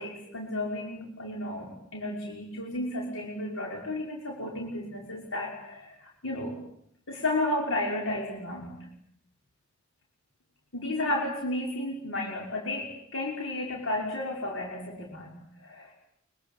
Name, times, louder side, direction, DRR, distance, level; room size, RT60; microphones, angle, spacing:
voice 1, 0.0-6.6 7.1-8.9 10.7-15.9, left 1 dB, 70° left, -1 dB, 6.0 m, -33 dB
25.0 x 25.0 x 8.6 m, 0.72 s
head